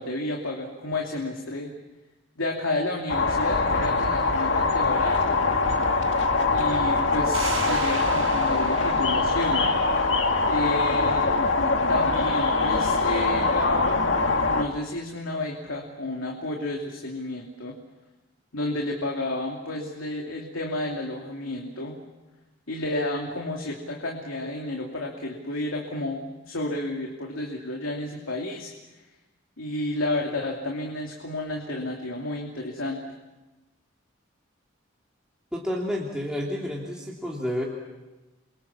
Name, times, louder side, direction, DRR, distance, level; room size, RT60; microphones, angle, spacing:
voice 1, 0.0-1.7 2.4-5.4 6.5-9.7 10.5-11.4 11.9-17.7 18.5-21.9 22.7-28.7 29.6-33.0, left 2 dB, 80° left, 0 dB, 2.9 m, -31 dB
sound 1, 3.1-14.6, left 3 dB, 60° left, 2.0 m, -23 dB
sound 2, 7.3-10.7, right 4 dB, 70° right, 6.0 m, -36 dB
voice 2, 35.5-37.6, left 1 dB, 5° right, -4 dB, 3.0 m, -30 dB
29.0 x 24.0 x 7.3 m, 1.1 s
head